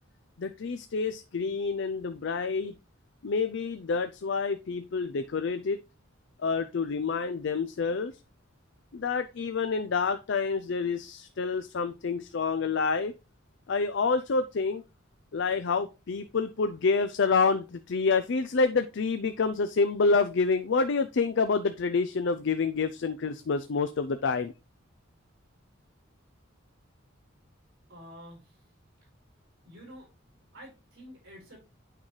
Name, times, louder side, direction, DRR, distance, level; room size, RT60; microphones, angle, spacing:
voice 1, 0.4-2.7 3.2-5.8 6.4-8.1 8.9-13.1 13.7-14.8 15.3-24.5, left 4 dB, 60° left, 10 dB, 0.5 m, -28 dB
voice 2, 27.9-28.5 29.6-30.1 30.5-31.6, equal, 55° right, -1 dB, 5.2 m, -48 dB
8.7 x 5.6 x 3.2 m, 0.28 s
head